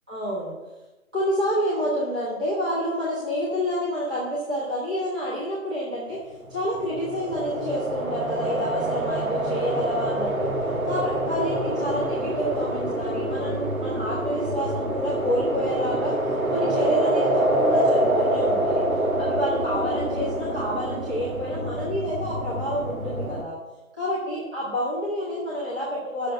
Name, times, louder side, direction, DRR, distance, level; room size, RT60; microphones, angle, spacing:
voice 1, 0.1-0.5 1.1-6.2 6.5-10.5 10.8-16.1 16.5-18.8 19.2-23.6 24.0-26.3, equal, 5° right, -10 dB, 0.9 m, -28 dB
sound 1, 6.5-23.4, right 1 dB, 80° right, 1.8 m, -26 dB
8.2 x 6.5 x 8.1 m, 1.1 s
figure-of-eight pair, 155°, 41 cm